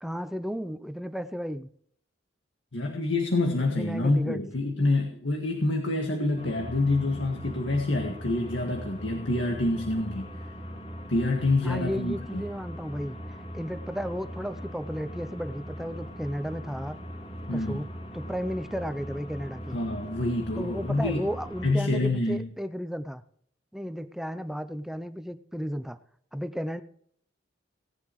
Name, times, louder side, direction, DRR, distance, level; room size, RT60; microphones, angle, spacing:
voice 1, 0.0-1.7 3.7-4.4 11.6-17.0 17.5-17.9 18.1-19.8 20.6-23.2 23.7-26.0 26.3-26.8, equal, ahead, 11 dB, 0.5 m, -34 dB
voice 2, 2.7-10.3 11.1-12.4 17.5-17.8 19.7-21.2 21.6-22.5, left 2 dB, 75° left, 2 dB, 1.8 m, -27 dB
sound 1, 6.4-21.7, equal, 30° left, 2.6 m, -40 dB
18.0 x 11.0 x 3.1 m, 0.63 s
head